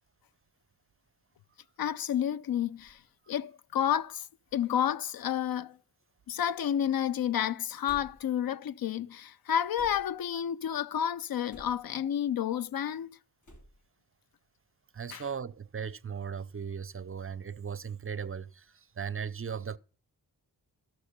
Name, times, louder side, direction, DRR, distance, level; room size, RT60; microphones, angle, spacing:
voice 1, 1.8-3.0 3.3-4.3 4.5-5.8 6.3-13.2 15.1-15.2, left 9 dB, 65° left, 0.5 m, -30 dB
sound 1, 2.8-3.1 3.9-4.0 5.2-5.5 5.7-6.3 7.8-8.4 9.7-10.3 11.5-12.0 13.4-13.9, equal, 50° left, 3.1 m, -53 dB
voice 2, 14.9-19.8, right 7 dB, 35° right, 0.5 m, -37 dB
14.0 x 6.1 x 6.6 m
wide cardioid pair, 85°, 39 cm